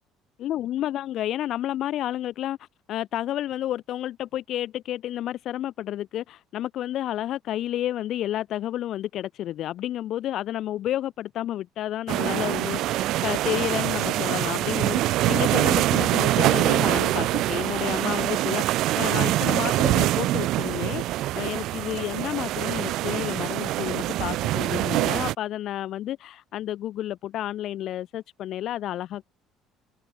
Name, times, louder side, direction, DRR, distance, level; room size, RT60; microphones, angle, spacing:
voice 1, 0.4-29.3, left 12 dB, 50° left, 6.1 m, -31 dB
sound 1, 12.1-25.3, right 15 dB, 60° right, 0.5 m, -24 dB
cardioid pair, 150°, 0 cm